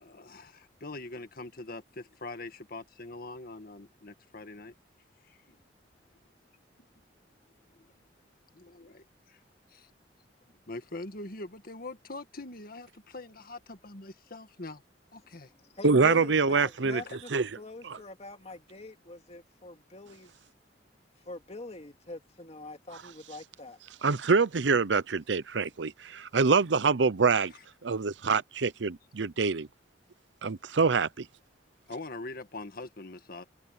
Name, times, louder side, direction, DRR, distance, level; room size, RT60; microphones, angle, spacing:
voice 1, 0.0-4.7 5.2-5.6 8.5-9.4 9.7-9.9 10.7-14.8 15.1-15.5 16.0-16.3 17.0-17.2 27.5-27.6 31.9-33.4, left 2 dB, 55° left, 1.8 m, -43 dB
voice 2, 15.2-17.3 17.6-20.3 21.3-23.8, left 2 dB, 35° left, 2.3 m, -45 dB
voice 3, 15.8-17.0 17.3-17.5 17.8-18.0 24.0-27.5 27.8-29.7 30.4-31.3, right 4 dB, 85° right, 0.7 m, -25 dB
head